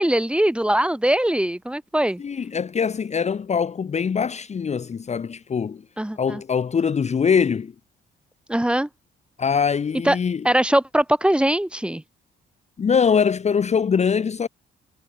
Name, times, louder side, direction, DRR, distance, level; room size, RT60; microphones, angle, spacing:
voice 1, 0.0-2.2 6.0-6.4 8.5-8.9 10.0-10.2 10.4-12.0, right 1 dB, 5° right, 3.2 m, -21 dB
voice 2, 2.2-5.8 6.1-7.7 9.4-10.5 12.8-14.5, left 6 dB, 35° left, 0.9 m, -22 dB
cardioid pair, 90°, 20 cm